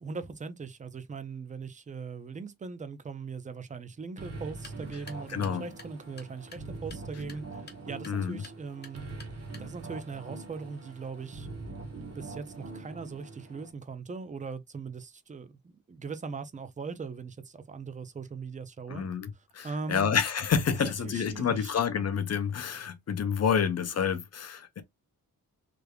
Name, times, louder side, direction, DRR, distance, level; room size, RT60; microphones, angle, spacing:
voice 1, 0.0-9.0 9.6-11.5 12.1-19.1 19.6-20.1 21.0-21.8, right 5 dB, 20° right, 0.4 m, -40 dB
sound 1, 4.2-13.7, right 3 dB, 40° right, 1.1 m, -43 dB
sound 2, 4.5-10.0, left 4 dB, 25° left, 0.9 m, -53 dB
voice 2, 5.3-5.7 8.1-8.4 18.9-24.8, left 7 dB, 45° left, 0.6 m, -29 dB
3.3 x 3.3 x 2.3 m
wide cardioid pair, 160°, 38 cm